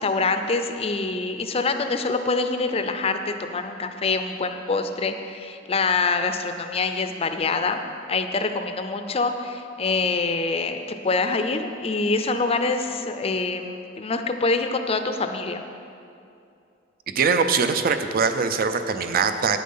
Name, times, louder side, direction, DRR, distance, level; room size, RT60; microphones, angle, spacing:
voice 1, 0.0-7.8 8.1-10.8 11.0-15.6, left 3 dB, 30° left, 7 dB, 0.5 m, -25 dB
voice 2, 17.2-19.6, right 5 dB, 50° right, 8 dB, 0.5 m, -22 dB
9.3 x 7.6 x 5.5 m, 2.6 s
head